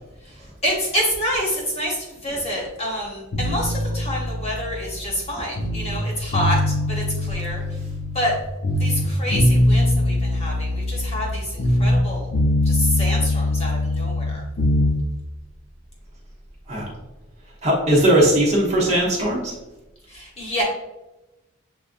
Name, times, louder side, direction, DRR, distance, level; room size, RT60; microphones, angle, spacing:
voice 1, 0.2-7.8 8.1-8.3 8.8-12.3 12.6-14.4 20.1-20.6, equal, 30° left, -3 dB, 1.1 m, -27 dB
sound 1, 3.3-6.0 6.3-8.4 8.6-12.1 12.3-14.9, left 1 dB, 70° left, 0.8 m, -22 dB
voice 2, 17.6-19.5, right 1 dB, 30° right, -4 dB, 0.9 m, -19 dB
7.0 x 2.4 x 2.5 m, 0.99 s
head